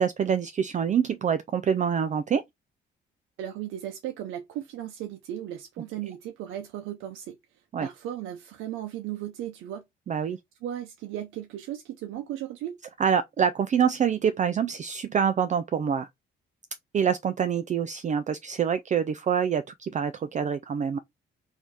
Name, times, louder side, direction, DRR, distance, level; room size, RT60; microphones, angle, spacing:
voice 1, 0.0-2.4 7.7-7.9 10.1-10.4 13.0-16.1 16.9-21.0, right 7 dB, 40° right, 0.4 m, -26 dB
voice 2, 3.4-7.4 7.8-9.8 10.6-12.8, right 11 dB, 90° right, 0.6 m, -36 dB
3.4 x 2.7 x 4.6 m
cardioid pair, 90°, 20 cm